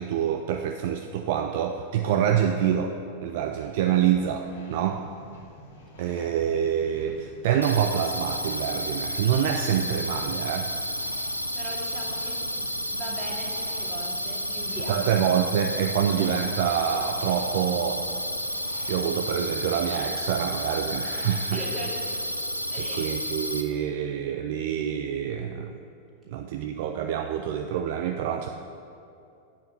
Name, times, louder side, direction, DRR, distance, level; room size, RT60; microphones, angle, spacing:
voice 1, 0.0-5.1 6.0-10.7 14.9-18.0 18.9-21.6 23.0-25.8 26.3-28.5, right 9 dB, 50° right, 5 dB, 0.4 m, -26 dB
sound 1, 3.5-19.1, left 1 dB, 55° left, 1.8 m, -50 dB
sound 2, 7.6-23.6, equal, 90° left, 0.6 m, -31 dB
voice 2, 11.5-12.5 12.9-15.0 21.5-22.2 22.7-23.1 26.2-26.3, right 1 dB, 20° right, -4 dB, 2.4 m, -38 dB
7.9 x 7.0 x 6.9 m, 2.5 s
figure-of-eight pair, 90°, 0 cm